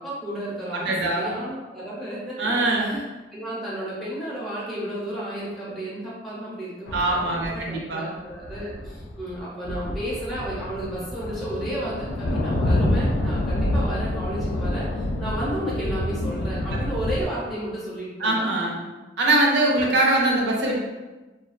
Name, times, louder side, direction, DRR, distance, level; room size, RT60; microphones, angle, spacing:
voice 1, 0.0-2.4 2.8-3.0 3.3-18.3, right 1 dB, ahead, -8 dB, 0.6 m, -32 dB
voice 2, 0.7-1.4 2.4-3.0 6.9-8.1 16.7-16.8 18.2-18.8 19.2-20.8, right 2 dB, 70° right, -2 dB, 0.5 m, -22 dB
sound 1, 6.9-7.6 8.3-9.4 9.7-17.3, left 1 dB, 80° left, 0.3 m, -27 dB
2.3 x 2.3 x 2.4 m, 1.2 s
head